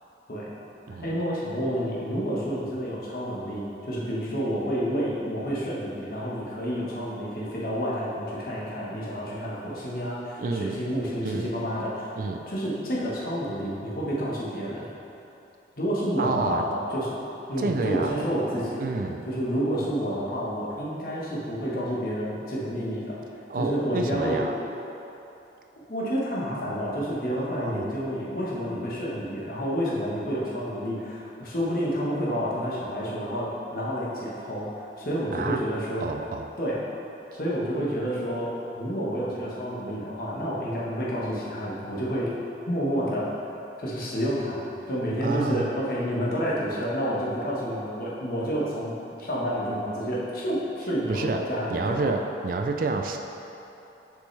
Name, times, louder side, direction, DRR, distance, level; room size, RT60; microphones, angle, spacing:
voice 1, 1.0-12.1 12.5-14.9 15.8-17.2 17.5-18.8 19.3-23.2 23.6-24.4 25.9-36.1 36.6-36.8 37.3-38.5 38.7-42.3 42.7-43.3 43.8-52.0, equal, 50° left, -6 dB, 1.1 m, -29 dB
voice 2, 10.4-10.8 11.2-11.5 12.2-12.4 16.2-16.6 17.6-18.2 18.8-19.3 23.5-24.5 27.3-27.8 35.3-35.6 36.0-36.5 37.3-37.4 45.2-45.8 51.1-51.4 51.7-53.2, right 3 dB, 50° right, 4 dB, 0.3 m, -29 dB
6.6 x 5.2 x 3.3 m, 2.9 s
head